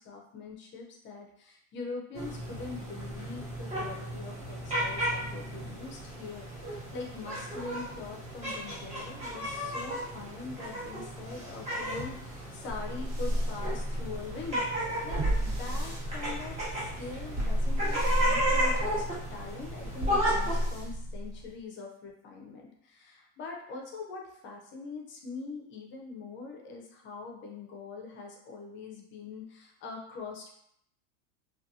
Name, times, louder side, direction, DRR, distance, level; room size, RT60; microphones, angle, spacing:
voice 1, 0.0-14.6 15.0-30.5, left 4 dB, 30° left, 0 dB, 0.5 m, -43 dB
sound 1, 2.1-20.6, equal, 20° right, 0.8 m, -34 dB
sound 2, 12.7-21.6, equal, 55° right, 1.4 m, -32 dB
2.5 x 2.4 x 2.6 m, 0.72 s
supercardioid pair, 130°, 37 cm